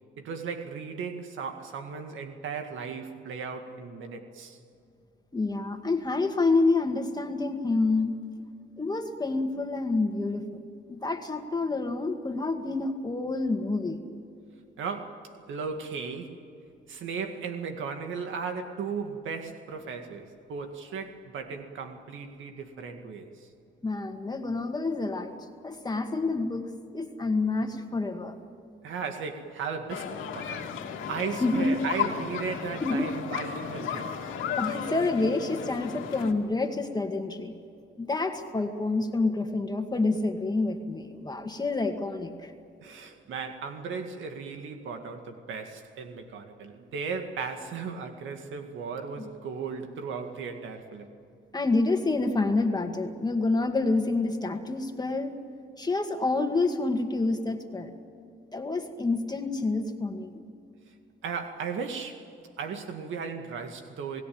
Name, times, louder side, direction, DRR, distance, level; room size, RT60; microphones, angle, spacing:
voice 1, 0.2-4.6 14.8-16.4 16.9-23.5 28.8-30.7 31.1-34.3 42.8-51.1 61.2-62.3 62.6-64.2, right 5 dB, 75° right, 2.1 m, -36 dB
voice 2, 5.3-8.2 8.8-10.5 10.9-14.0 23.8-25.4 25.6-28.4 31.4-31.7 32.8-33.1 34.6-37.5 38.0-42.5 51.5-55.3 55.8-57.9 58.5-60.4, left 3 dB, 20° left, 2.0 m, -28 dB
sound 1, 29.9-36.3, left 8 dB, 85° left, 2.5 m, -34 dB
28.5 x 18.0 x 8.8 m
cardioid pair, 90°, 20 cm